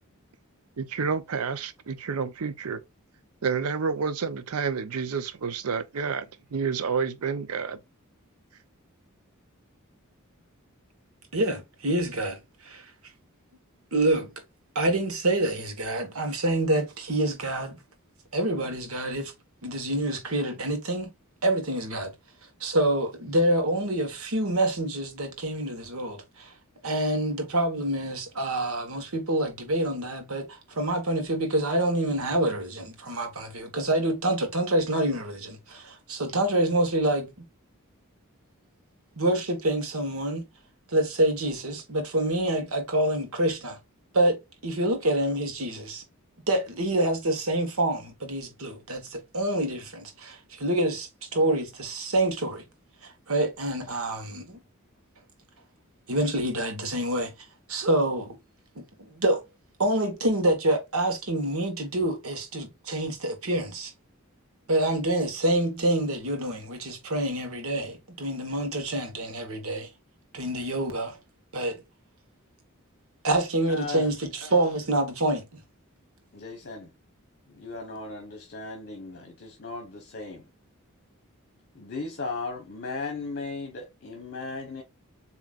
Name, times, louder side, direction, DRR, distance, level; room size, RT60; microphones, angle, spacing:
voice 1, 0.8-2.8 3.4-7.8, right 5 dB, 90° right, 0.6 m, -29 dB
voice 2, 11.3-12.9 13.9-14.3 14.7-17.8 18.3-19.3 19.6-21.1 21.4-22.1 22.6-26.5 26.8-37.3 39.2-40.4 40.9-43.8 44.1-46.0 46.5-52.6 53.0-54.6 56.1-57.3 57.7-58.4 58.7-59.4 59.8-63.9 64.7-69.9 70.3-71.2 71.5-71.8 73.2-75.5, right 1 dB, 70° right, 1.4 m, -27 dB
voice 3, 73.7-74.1 76.3-76.9 77.5-80.4 81.7-84.8, left 3 dB, 50° left, 1.1 m, -36 dB
7.4 x 2.9 x 2.4 m
head